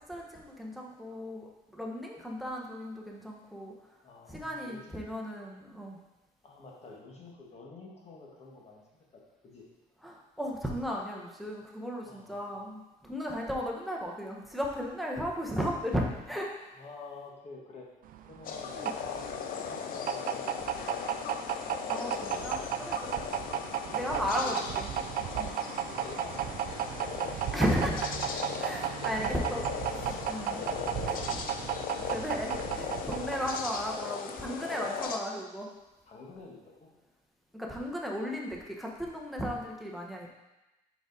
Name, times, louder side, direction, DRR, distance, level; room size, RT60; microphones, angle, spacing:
voice 1, 0.0-3.7 4.3-6.0 10.0-16.5 18.7-18.9 21.9-23.2 23.9-24.9 25.3-25.5 27.5-28.3 28.6-29.6 30.3-30.6 31.0-31.4 32.1-35.7 37.5-40.3, equal, ahead, -2 dB, 1.0 m, -35 dB
voice 2, 4.0-4.9 6.4-8.8 9.4-9.7 12.0-12.6 16.8-17.9 18.2-21.1 23.0-23.2 23.5-24.7 25.8-27.3 28.9-31.4 33.5-33.7 34.6-34.8 36.0-36.9 39.4-39.7, left 3 dB, 40° left, -2 dB, 1.5 m, -49 dB
sound 1, 18.1-34.1, right 9 dB, 55° right, 0.4 m, -34 dB
sound 2, 18.4-35.2, left 7 dB, 55° left, 0.6 m, -38 dB
5.0 x 5.0 x 3.9 m, 1.0 s
cardioid pair, 110°, 17 cm